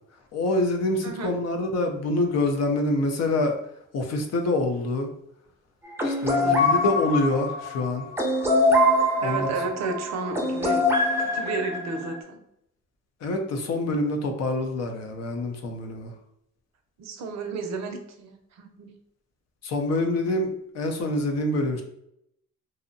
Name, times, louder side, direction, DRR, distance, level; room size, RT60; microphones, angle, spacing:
voice 1, 0.3-3.6 3.9-5.1 6.0-8.0 9.2-9.5 13.2-16.1 19.6-21.8, left 2 dB, 60° left, 4 dB, 0.5 m, -26 dB
voice 2, 1.0-1.4 6.3-6.7 9.2-10.8 11.2-12.4 17.0-18.9, right 4 dB, 65° right, 5 dB, 0.5 m, -33 dB
sound 1, 6.0-12.2, left 1 dB, 10° right, 0.5 m, -23 dB
2.6 x 2.0 x 2.5 m, 0.77 s
cardioid pair, 90°, 30 cm